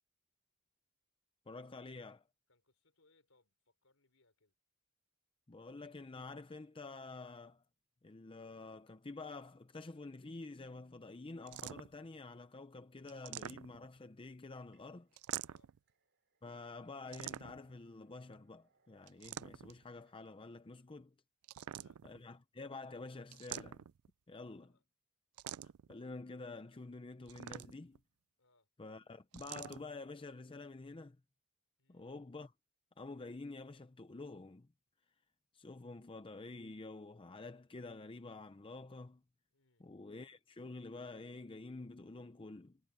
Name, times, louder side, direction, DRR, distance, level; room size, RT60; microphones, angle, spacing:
voice 1, 1.5-2.2 5.5-7.6 8.0-15.1 16.4-21.1 22.0-23.8 24.3-24.7 25.9-28.0 28.8-31.2 31.9-32.5 33.0-34.7 35.5-39.2 39.8-42.8, left 3 dB, 25° left, 0.6 m, -49 dB
voice 2, 2.5-4.5 15.4-15.7 20.7-20.8 21.5-22.0 24.6-24.8 28.4-28.7 31.8-32.1 39.5-39.9, left 2 dB, 65° left, 4.9 m, -74 dB
sound 1, 11.5-12.1 13.1-14.0 15.2-15.8 17.1-17.8 19.1-19.8 21.4-22.2 23.3-24.1 25.4-25.9 27.3-28.0 29.3-29.8, right 11 dB, 85° right, 0.4 m, -46 dB
sound 2, 14.4-20.3, right 4 dB, 55° right, 4.8 m, -79 dB
head